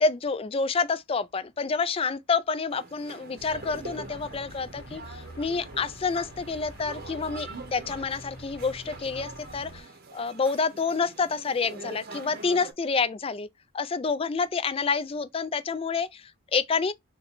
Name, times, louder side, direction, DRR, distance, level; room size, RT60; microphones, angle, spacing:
voice 1, 0.0-9.9 10.1-13.5 13.7-16.9, left 4 dB, 25° left, 0.3 m, -28 dB
sound 1, 2.7-12.7, right 3 dB, 45° right, 0.7 m, -44 dB
sound 2, 3.4-9.8, equal, 50° left, 1.2 m, -45 dB
4.0 x 2.2 x 4.3 m
head